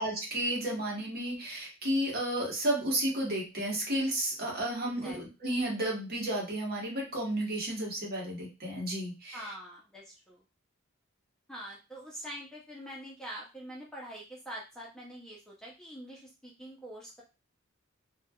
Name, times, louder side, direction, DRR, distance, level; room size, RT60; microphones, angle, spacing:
voice 1, 0.0-9.5, right 1 dB, 50° right, -2 dB, 1.1 m, -32 dB
voice 2, 9.3-10.4 11.5-17.2, equal, 5° left, -4 dB, 0.5 m, -44 dB
3.1 x 2.2 x 2.2 m, 0.28 s
head